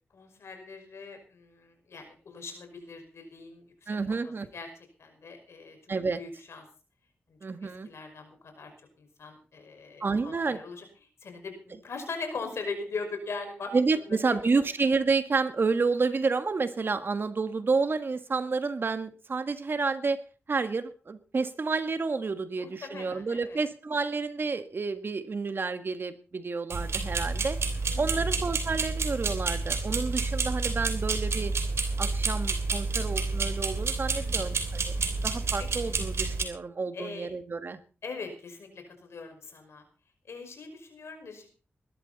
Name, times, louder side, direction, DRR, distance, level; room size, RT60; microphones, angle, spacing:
voice 1, 0.1-4.2 4.5-4.7 5.0-5.8 6.2-6.6 7.3-8.7 9.0-10.9 11.2-14.7 22.5-23.6 27.9-28.4 34.1-34.5 35.6-35.9 36.9-37.3 38.0-39.8 40.3-41.5, left 4 dB, 80° left, 5 dB, 5.6 m, -41 dB
voice 2, 3.9-4.5 5.9-6.2 7.4-7.9 10.0-10.6 13.7-20.2 20.5-27.6 28.0-31.5 32.0-37.8, right 4 dB, 55° right, 10 dB, 1.7 m, -30 dB
sound 1, 26.7-36.4, right 3 dB, 75° right, 3.1 m, -29 dB
20.0 x 12.5 x 4.2 m, 0.36 s
wide cardioid pair, 80°, 4 cm